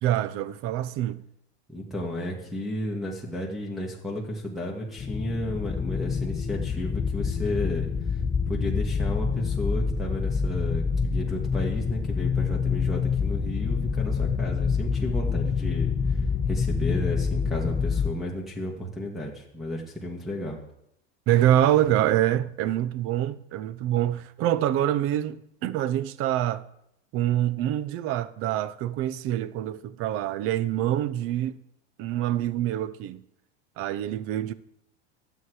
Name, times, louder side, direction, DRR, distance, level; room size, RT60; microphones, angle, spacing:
voice 1, 0.0-1.2 21.3-26.6 27.1-31.6 32.0-33.2 33.8-34.5, right 12 dB, 45° right, 0.6 m, -25 dB
voice 2, 1.7-20.6, left 1 dB, ahead, 1.8 m, -33 dB
sound 1, 5.0-18.1, left 5 dB, 20° left, 0.6 m, -27 dB
11.0 x 7.9 x 4.8 m
supercardioid pair, 120°, 32 cm